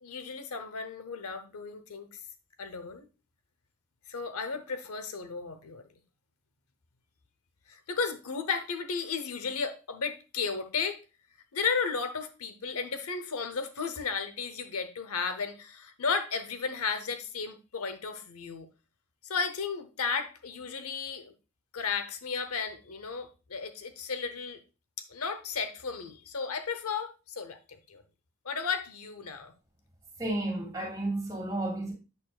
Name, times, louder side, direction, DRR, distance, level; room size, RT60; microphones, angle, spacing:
voice 1, 0.0-2.1 2.6-3.1 4.1-5.8 7.7-11.0 11.5-18.7 19.2-21.3 21.7-24.6 25.1-27.6 27.9-28.0 28.4-29.5, left 5 dB, 85° left, 0.8 m, -34 dB
voice 2, 30.2-31.9, right 1 dB, 15° right, 2.5 m, -32 dB
8.3 x 6.6 x 2.3 m
head